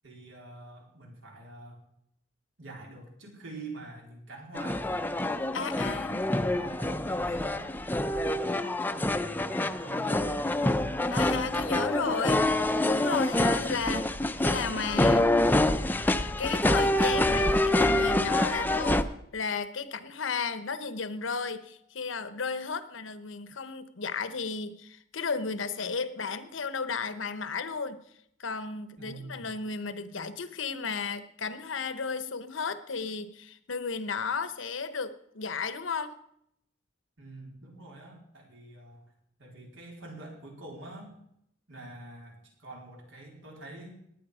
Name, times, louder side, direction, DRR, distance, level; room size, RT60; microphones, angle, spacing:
voice 1, 0.0-1.8 2.6-5.4 5.9-7.7 8.1-9.1 9.5-10.4 29.0-29.5 37.2-39.1 39.4-41.2 41.7-44.0, right 2 dB, 85° right, 0 dB, 4.1 m, -46 dB
sound 1, 4.5-19.0, left 1 dB, 10° left, 0.5 m, -26 dB
voice 2, 5.5-6.2 11.1-12.5 12.9-14.1 14.4-15.3 16.4-28.0 28.4-36.2, left 5 dB, 85° left, 12 dB, 1.0 m, -34 dB
18.5 x 9.6 x 5.0 m, 0.75 s
head